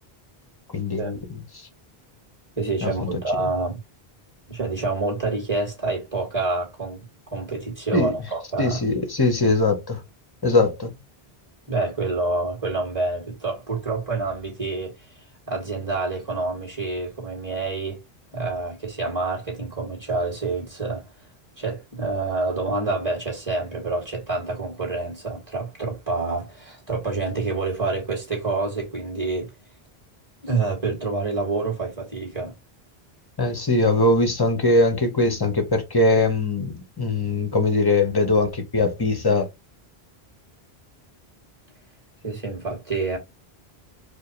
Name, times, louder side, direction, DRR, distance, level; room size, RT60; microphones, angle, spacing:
voice 1, 0.7-1.2 2.8-3.1 7.9-8.1 8.6-10.0 10.4-10.9 33.4-39.5, left 2 dB, 25° left, 0.8 m, -21 dB
voice 2, 2.6-3.8 4.5-8.8 11.7-15.1 15.5-18.0 18.3-21.0 21.6-29.5 30.4-32.6 42.2-43.2, right 3 dB, 20° right, 2.1 m, -27 dB
4.9 x 2.2 x 3.0 m
omnidirectional pair, 1.1 m